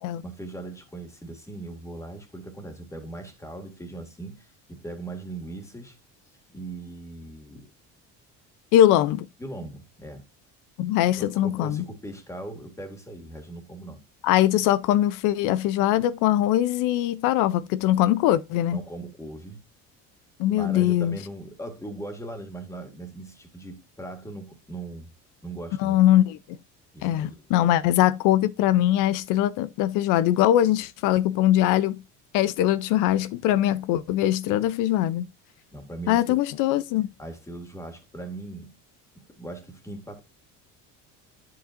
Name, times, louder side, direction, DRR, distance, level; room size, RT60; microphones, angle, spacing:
voice 1, 0.2-6.0 6.5-7.7 9.4-10.3 11.2-14.0 18.7-19.6 20.5-25.1 25.4-26.0 26.9-27.3 35.7-36.4 37.2-38.8 39.2-40.2, right 2 dB, 10° left, 2.0 m, -39 dB
voice 2, 8.7-9.3 10.8-11.8 14.2-18.8 20.4-21.2 25.8-26.6 27.0-32.0 32.3-35.3 36.1-37.1, left 13 dB, 75° left, 0.6 m, -22 dB
10.0 x 7.7 x 2.5 m
cardioid pair, 145°, 32 cm